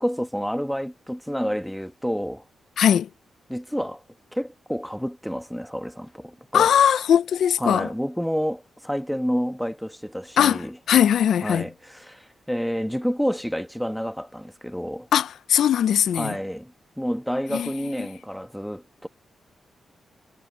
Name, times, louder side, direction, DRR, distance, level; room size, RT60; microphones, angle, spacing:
voice 1, 0.0-2.4 3.5-4.0 4.3-6.7 7.6-10.7 11.4-15.1 16.1-19.1, equal, ahead, 1.3 m, -29 dB
voice 2, 2.8-3.1 6.5-7.9 10.4-11.7 15.1-16.4 17.5-17.7 18.0-18.1, left 9 dB, 85° left, 0.5 m, -20 dB
wide cardioid pair, 155°, 0 cm